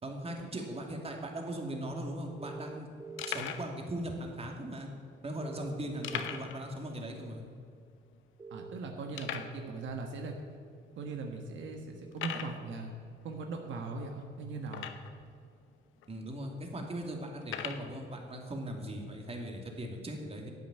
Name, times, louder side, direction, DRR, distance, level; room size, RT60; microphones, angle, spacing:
voice 1, 0.0-2.9 3.3-4.9 5.2-7.4 16.1-20.5, right 1 dB, 30° right, 2 dB, 2.5 m, -39 dB
sound 1, 1.7-1.8 2.0-2.2 2.7-2.8 3.2-3.7 4.5-4.6 6.0-6.6 6.9-7.0 7.4-7.5 8.1-8.2 9.1-9.6 10.4-10.5 11.1-11.2 12.1-12.6 14.7-15.2 16.0-16.1 17.4-17.9, left 9 dB, 80° left, 1.0 m, -39 dB
sound 2, 2.4-3.4 5.4-6.4 8.4-8.8, right 4 dB, 15° right, 0.4 m, -46 dB
voice 2, 8.5-10.3 11.0-12.9 13.2-14.9, right 3 dB, 75° right, 2 dB, 1.4 m, -39 dB
11.0 x 8.3 x 8.9 m, 2.3 s
cardioid pair, 90°, 20 cm